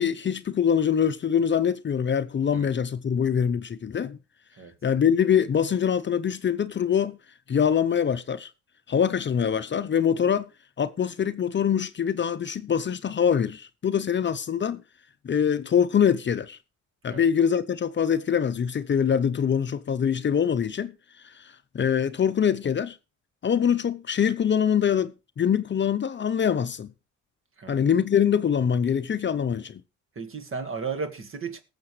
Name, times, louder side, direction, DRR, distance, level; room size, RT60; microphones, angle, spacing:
voice 1, 0.0-4.2 4.8-7.2 7.5-8.5 8.9-10.5 10.8-14.8 15.2-16.6 17.0-20.9 21.2-21.4 21.7-23.0 23.4-26.9 27.7-29.8, left 8 dB, 40° left, 0.7 m, -24 dB
voice 2, 30.2-31.6, right 5 dB, 45° right, 1.9 m, -34 dB
19.5 x 7.4 x 3.2 m
cardioid pair, 90°, 30 cm